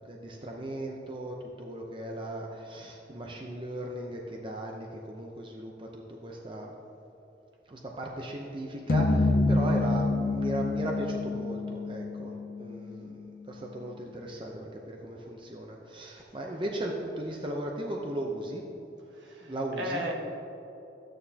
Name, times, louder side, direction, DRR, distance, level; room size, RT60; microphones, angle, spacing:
voice 1, 0.0-6.7 7.7-12.3 12.6-13.2 13.5-18.6 19.4-20.1, right 1 dB, 25° right, 0 dB, 0.6 m, -37 dB
sound 1, 8.9-13.3, left 2 dB, 50° left, 0.5 m, -27 dB
voice 2, 19.1-20.1, equal, 70° right, 0 dB, 1.3 m, -35 dB
13.0 x 9.0 x 2.8 m, 2.9 s
head